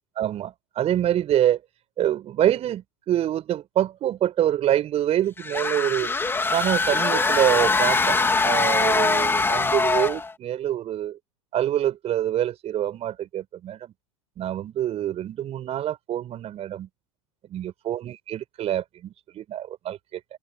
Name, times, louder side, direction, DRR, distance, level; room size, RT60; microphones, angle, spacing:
voice 1, 0.2-1.6 2.0-6.1 6.5-11.2 11.5-13.9 14.4-16.9 17.5-20.2, right 11 dB, 35° right, 6.1 m, -26 dB
sound 1, 5.4-10.3, left 3 dB, 15° left, 2.7 m, -22 dB
open air
hypercardioid pair, 90°, 18 cm